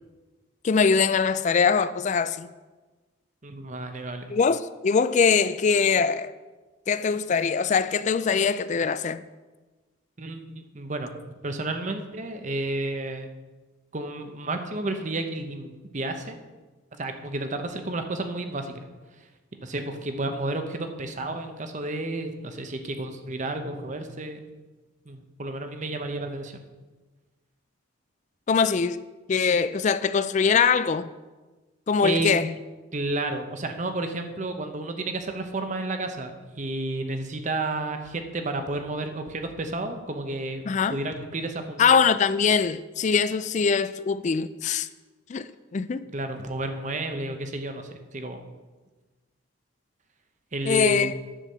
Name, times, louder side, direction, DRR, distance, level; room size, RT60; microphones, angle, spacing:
voice 1, 0.6-2.5 4.3-6.3 6.9-9.2 28.5-29.0 29.3-31.1 31.9-32.5 40.7-41.0 41.8-44.9 45.3-46.0 50.7-51.1, left 5 dB, 35° left, 0.3 m, -22 dB
voice 2, 3.4-4.3 10.2-11.1 11.4-13.3 13.9-16.4 16.9-18.8 19.6-24.4 25.1-26.6 32.0-32.3 32.9-40.6 40.9-41.9 46.0-48.4 50.5-51.1, right 2 dB, 35° right, 0.8 m, -31 dB
10.0 x 4.7 x 6.8 m
head